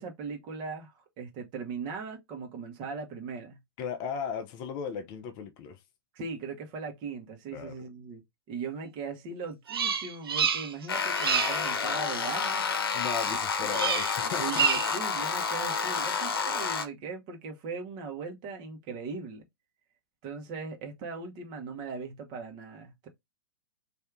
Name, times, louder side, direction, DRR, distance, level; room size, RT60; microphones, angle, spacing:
voice 1, 0.0-3.6 6.1-8.2 8.5-12.7 13.6-13.8 14.4-19.4 20.2-23.1, right 5 dB, 35° right, 1.2 m, -39 dB
voice 2, 3.8-5.8 7.5-7.8 12.9-14.7, left 6 dB, 35° left, 0.6 m, -36 dB
Bird vocalization bird call bird song, 9.7-10.9 11.1-11.7 13.7-14.2 14.5-15.0, right 6 dB, 70° right, 0.6 m, -28 dB
sound 1, 10.9-16.9, left 5 dB, 70° left, 0.8 m, -30 dB
3.2 x 2.7 x 3.6 m
figure-of-eight pair, 105°, 13 cm